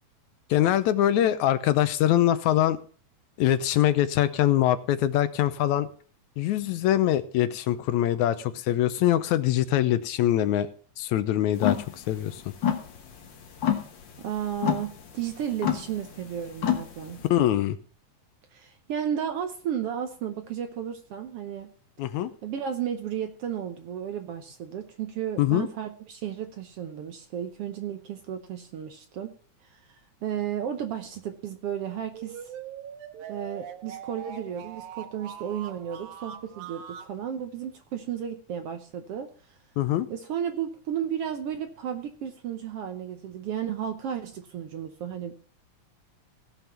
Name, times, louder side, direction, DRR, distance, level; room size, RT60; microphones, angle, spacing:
voice 1, 0.5-2.8 3.4-5.9 6.4-10.7 11.0-11.8 12.1-12.4 17.3-17.8 22.0-22.3 25.4-25.7 39.8-40.1, left 12 dB, 80° left, 13 dB, 2.0 m, -23 dB
sound 1, 11.6-17.3, left 9 dB, 50° left, 1.6 m, -29 dB
voice 2, 14.2-17.2 18.5-21.7 22.4-29.3 29.6-32.5 33.3-39.6 40.1-45.3, right 9 dB, 65° right, 7 dB, 1.5 m, -33 dB
sound 2, 32.1-37.1, right 8 dB, 90° right, 2.5 m, -42 dB
17.0 x 5.7 x 5.7 m, 0.43 s
omnidirectional pair, 3.4 m